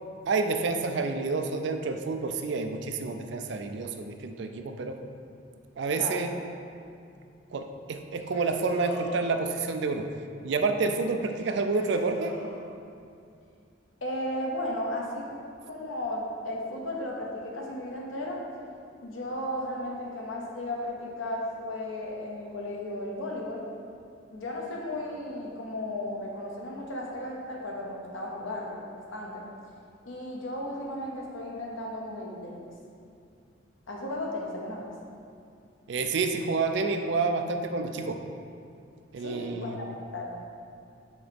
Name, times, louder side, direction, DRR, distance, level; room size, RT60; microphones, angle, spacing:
voice 1, 0.3-5.0 5.8-6.3 7.5-10.0 10.4-12.3 35.9-38.2 39.1-39.8, right 4 dB, 60° right, 6 dB, 0.4 m, -29 dB
sound 1, 8.0-9.9 11.3-12.6, left 1 dB, 15° right, 1.0 m, -44 dB
voice 2, 14.0-15.3 15.7-18.4 19.0-23.6 24.3-28.8 29.1-29.5 30.0-32.7 33.9-34.9 39.2-39.8 40.1-40.4, left 1 dB, 85° left, -1 dB, 0.9 m, -35 dB
6.3 x 2.9 x 5.1 m, 2.4 s
head